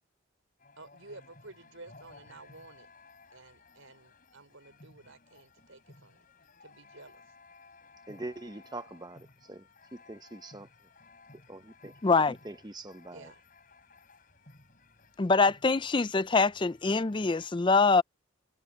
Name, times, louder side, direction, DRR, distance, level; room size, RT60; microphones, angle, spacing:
sound 1, 0.6-17.5, left 3 dB, 40° left, 6.3 m, -57 dB
voice 1, 0.8-2.9 3.3-6.3 6.6-7.2 13.1-13.4, right 2 dB, 80° right, 5.7 m, -52 dB
voice 2, 8.1-10.7 11.5-11.9 12.3-13.3, right 2 dB, 20° right, 0.9 m, -43 dB
voice 3, 12.0-12.4 15.2-18.0, left 4 dB, 25° left, 0.4 m, -24 dB
head